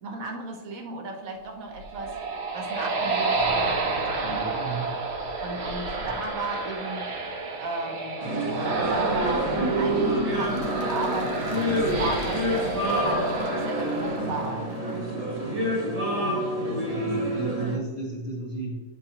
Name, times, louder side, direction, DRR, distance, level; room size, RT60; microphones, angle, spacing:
voice 1, 0.0-2.1 2.5-4.5 5.4-7.1 7.6-15.0 16.1-16.4, right 2 dB, 75° right, 3 dB, 1.3 m, -35 dB
sound 1, 1.6-15.1, right 3 dB, 55° right, 1.0 m, -30 dB
voice 2, 4.2-4.9 6.0-6.1 16.8-18.8, right 2 dB, 25° left, -5 dB, 1.3 m, -34 dB
sound 2, 8.2-17.8, right 1 dB, 30° right, 0.8 m, -28 dB
sound 3, 10.3-15.1, left 6 dB, 70° left, 1.0 m, -47 dB
9.1 x 3.8 x 2.8 m, 1.3 s
omnidirectional pair, 1.4 m